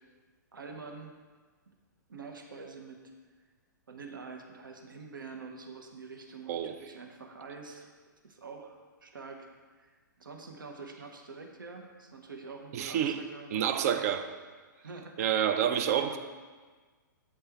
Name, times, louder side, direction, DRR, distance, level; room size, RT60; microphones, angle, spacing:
voice 1, 0.5-1.1 2.1-3.0 3.9-7.9 8.2-9.5 9.8-14.0 14.8-15.4 16.0-16.2, right 4 dB, 80° right, 3 dB, 0.7 m, -46 dB
voice 2, 12.7-13.2 13.5-14.3 15.2-16.2, right 9 dB, 50° right, 9 dB, 0.5 m, -28 dB
7.2 x 4.3 x 3.4 m, 1.4 s
figure-of-eight pair, 115°, 11 cm